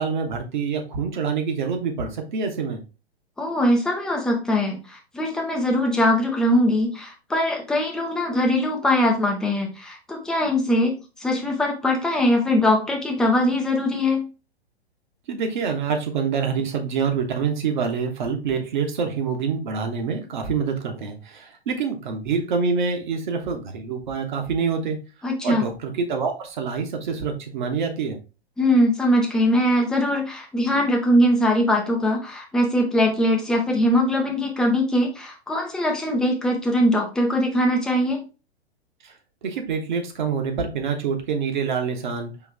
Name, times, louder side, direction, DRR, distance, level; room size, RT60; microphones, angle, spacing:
voice 1, 0.0-2.8 15.3-25.0 25.4-28.2 39.0-39.1 39.4-42.3, right 5 dB, 45° right, 4 dB, 1.1 m, -26 dB
voice 2, 3.4-14.3 25.2-25.7 28.6-38.2, left 1 dB, ahead, 1 dB, 0.4 m, -21 dB
4.6 x 3.2 x 3.4 m, 0.31 s
figure-of-eight pair, 110°, 32 cm